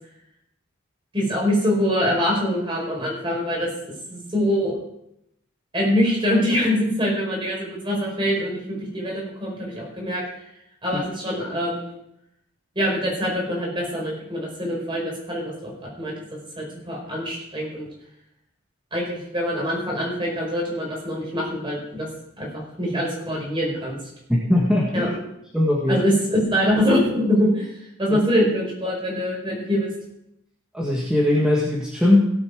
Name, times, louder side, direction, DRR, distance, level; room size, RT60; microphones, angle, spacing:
voice 1, 1.1-4.7 5.7-10.2 10.8-11.9 12.7-15.7 16.0-17.9 18.9-22.1 22.4-24.0 24.9-25.1 25.9-27.7 28.0-29.9, equal, 25° right, -2 dB, 4.7 m, -24 dB
voice 2, 24.3-25.1 25.5-26.0 30.7-32.3, left 1 dB, 5° right, -4 dB, 1.6 m, -20 dB
17.0 x 8.3 x 4.8 m, 0.81 s
head